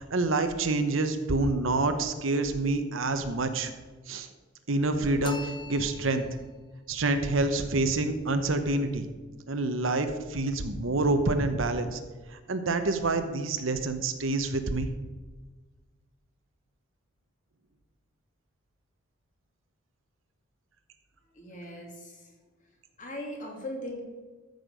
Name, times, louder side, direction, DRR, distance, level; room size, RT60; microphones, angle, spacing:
voice 1, 0.0-3.7 4.1-4.3 4.7-6.3 6.9-9.1 9.5-12.0 12.5-14.9, right 2 dB, 75° right, 8 dB, 1.0 m, -27 dB
sound 1, 5.2-6.5, left 3 dB, 25° left, 0.7 m, -41 dB
voice 2, 21.3-22.3 23.0-24.0, left 1 dB, 40° left, 0 dB, 2.5 m, -39 dB
13.0 x 6.7 x 5.2 m, 1.3 s
head